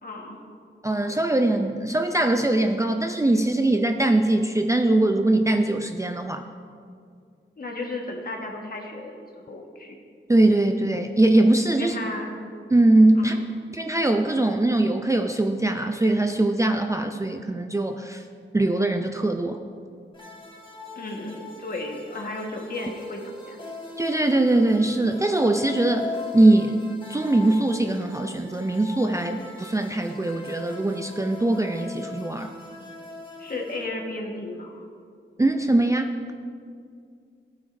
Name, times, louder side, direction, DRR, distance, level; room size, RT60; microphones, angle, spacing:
voice 1, 0.0-0.4 7.6-9.9 11.8-12.4 13.2-13.4 20.9-23.6 33.4-34.8, left 2 dB, 45° left, 1 dB, 1.5 m, -34 dB
voice 2, 0.8-6.4 10.3-12.0 12.7-13.4 13.7-18.2 18.5-19.6 24.0-26.8 27.1-32.5 35.4-36.3, right 2 dB, 15° right, 5 dB, 0.4 m, -21 dB
sound 1, 20.1-33.8, left 3 dB, 25° left, 1.6 m, -40 dB
16.0 x 9.1 x 2.6 m, 2.2 s
wide cardioid pair, 120°, 20 cm